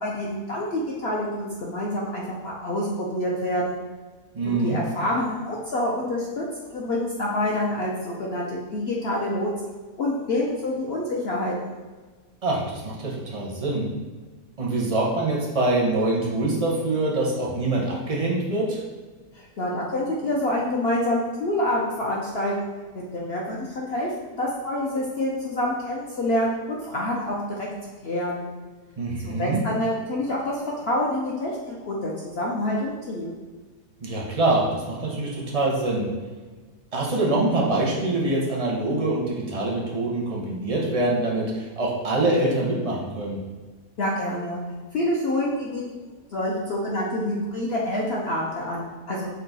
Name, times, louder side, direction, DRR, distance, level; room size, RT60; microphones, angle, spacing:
voice 1, 0.0-3.7 4.5-9.7 10.0-11.5 19.3-22.6 22.9-27.7 28.0-28.4 29.2-33.4 44.0-44.6 44.9-45.8 46.3-49.3, left 1 dB, 75° left, -3 dB, 0.5 m, -27 dB
voice 2, 4.3-4.8 12.4-13.9 14.6-18.8 29.0-29.6 34.0-36.1 36.9-43.4, right 2 dB, 45° right, -3 dB, 0.4 m, -24 dB
5.5 x 2.3 x 3.9 m, 1.3 s
omnidirectional pair, 1.8 m